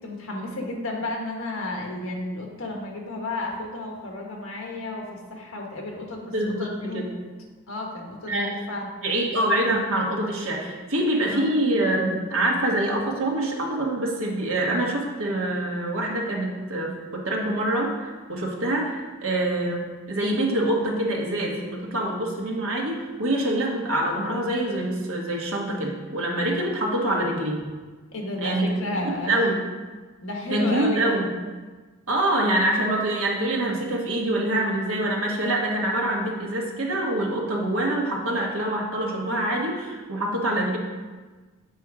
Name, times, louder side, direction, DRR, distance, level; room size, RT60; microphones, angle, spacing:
voice 1, 0.0-7.0 7.7-8.9 11.3-11.5 28.1-29.5 30.2-31.2, left 2 dB, 70° left, 0 dB, 1.4 m, -32 dB
voice 2, 6.3-7.1 8.3-8.6 9.0-27.6 28.4-28.8 29.0-29.6 30.5-31.3 32.1-40.8, right 1 dB, 75° right, -1 dB, 1.3 m, -25 dB
7.8 x 4.4 x 4.8 m, 1.3 s
head